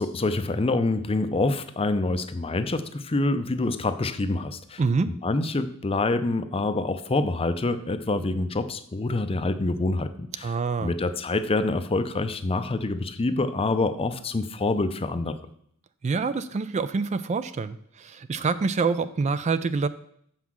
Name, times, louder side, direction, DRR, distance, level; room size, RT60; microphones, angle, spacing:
voice 1, 0.0-10.5 10.8-15.4, left 2 dB, 25° left, 11 dB, 0.5 m, -26 dB
voice 2, 4.8-5.1 10.4-10.9 16.0-19.9, right 4 dB, 30° right, 13 dB, 0.3 m, -26 dB
7.1 x 5.8 x 6.2 m, 0.67 s
head